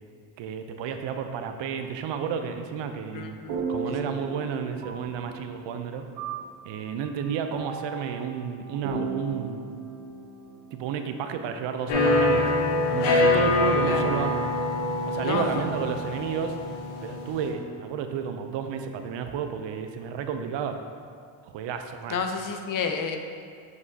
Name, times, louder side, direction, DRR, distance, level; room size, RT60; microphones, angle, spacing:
voice 1, 0.4-3.4 3.7-6.0 6.7-9.6 10.7-12.5 12.9-14.5 15.1-16.6 17.0-20.8 21.4-22.2, right 7 dB, 60° right, 7 dB, 0.6 m, -31 dB
voice 2, 3.1-3.6 3.9-4.0 13.8-14.1 15.2-15.7 22.1-23.2, left 5 dB, 40° left, 5 dB, 0.6 m, -30 dB
sound 1, 3.5-12.0, right 4 dB, 90° right, 1.1 m, -37 dB
sound 2, 11.9-17.5, left 2 dB, 75° left, 1.2 m, -24 dB
8.0 x 4.8 x 2.8 m, 2.2 s
supercardioid pair, 85°, 49 cm